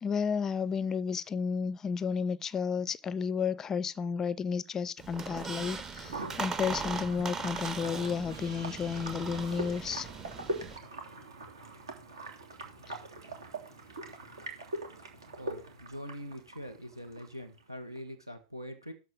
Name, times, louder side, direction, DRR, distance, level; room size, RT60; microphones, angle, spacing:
voice 1, 0.0-10.1 12.9-13.0, left 6 dB, 20° left, 0.4 m, -32 dB
Squeak, 5.0-10.8, right 5 dB, 20° right, 0.9 m, -39 dB
sound 1, 6.0-18.0, right 1 dB, 70° right, 3.0 m, -42 dB
Gong, 8.3-13.3, right 4 dB, 55° right, 5.1 m, -56 dB
voice 2, 15.4-18.9, equal, 90° right, 1.6 m, -43 dB
13.0 x 4.4 x 7.4 m
figure-of-eight pair, 95°, 2 cm